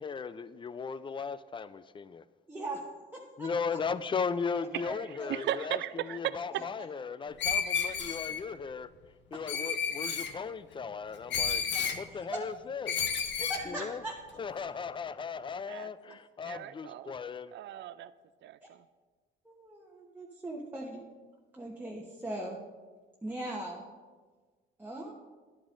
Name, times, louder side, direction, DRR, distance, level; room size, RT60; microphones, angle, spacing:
voice 1, 0.0-2.2 3.4-8.9 9.3-11.6 12.0-13.0 13.7-14.0 14.4-17.5, left 5 dB, 25° left, 15 dB, 0.3 m, -37 dB
voice 2, 2.5-2.8 4.8-5.3 6.5-6.6 9.3-9.4 11.7-12.5 13.3-14.2 19.4-21.0 21.5-22.6 23.2-23.8 24.8-25.1, right 1 dB, 10° right, -2 dB, 1.1 m, -39 dB
voice 3, 5.1-6.6 15.7-16.2 16.4-17.1 17.5-18.1 18.4-18.8, right 12 dB, 65° right, 15 dB, 0.4 m, -37 dB
Screech, 7.4-8.4 9.5-10.3 11.3-12.0 12.9-13.6, left 6 dB, 65° left, 0.8 m, -31 dB
11.5 x 8.6 x 2.5 m, 1.4 s
cardioid pair, 90°, 20 cm